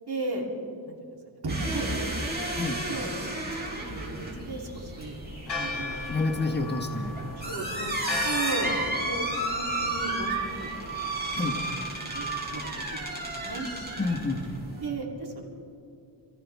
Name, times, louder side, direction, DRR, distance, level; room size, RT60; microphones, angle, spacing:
voice 1, 0.1-0.5 0.9-1.0 1.4-2.1 2.9-3.1 3.7-5.2 5.5-6.2 7.4-8.8 9.1-10.9 11.5-11.7 12.1-12.6 12.9-13.0 13.4-13.7 14.8-15.5, right 2 dB, 55° right, -2 dB, 3.4 m, -35 dB
sound 1, 1.5-14.9, right 2 dB, 20° right, 4.6 m, -33 dB
Church bell, 5.5-11.7, left 3 dB, 60° left, 2.6 m, -38 dB
voice 2, 6.1-7.2 11.3-11.6 14.0-14.6, left 3 dB, 25° left, 2 dB, 1.3 m, -29 dB
27.5 x 15.0 x 3.5 m, 2.6 s
wide cardioid pair, 90°, 45 cm